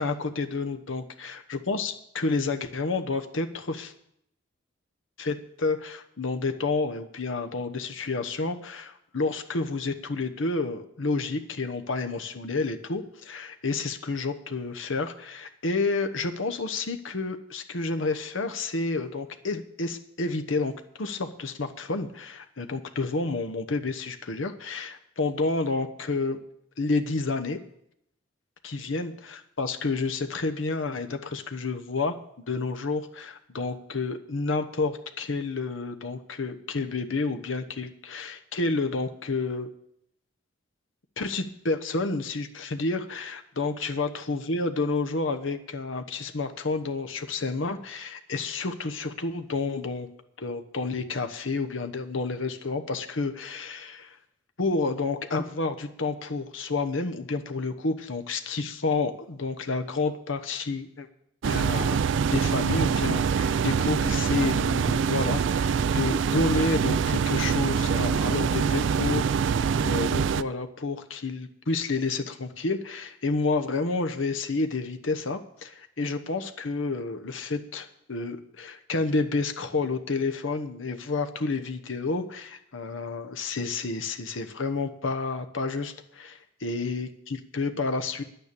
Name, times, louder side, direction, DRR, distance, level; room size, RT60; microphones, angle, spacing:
voice 1, 0.0-3.9 5.2-20.7 21.0-26.4 26.8-27.6 28.6-39.7 41.2-50.1 50.4-54.2 54.6-61.1 61.4-62.0 62.3-69.2 69.5-88.2, left 3 dB, 80° left, 7 dB, 1.0 m, -30 dB
sound 1, 61.4-70.4, right 6 dB, 65° right, 0.3 m, -24 dB
10.5 x 9.2 x 6.9 m, 0.74 s
head